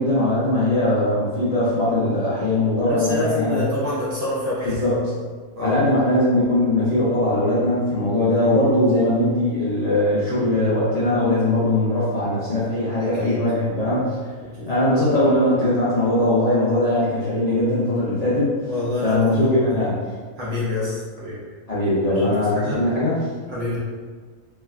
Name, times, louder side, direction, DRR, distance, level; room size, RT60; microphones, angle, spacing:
voice 1, 0.0-3.7 4.6-5.0 5.6-14.2 14.7-18.5 19.0-20.0 21.7-23.3, left 1 dB, 60° left, -10 dB, 0.4 m, -20 dB
voice 2, 2.9-4.7 5.6-5.8 13.2-13.3 14.6-14.7 18.7-19.7 20.4-21.4 22.1-22.3 22.5-22.8 23.5-23.8, left 2 dB, 60° right, -7 dB, 0.7 m, -26 dB
3.3 x 2.1 x 2.3 m, 1.5 s
omnidirectional pair, 1.5 m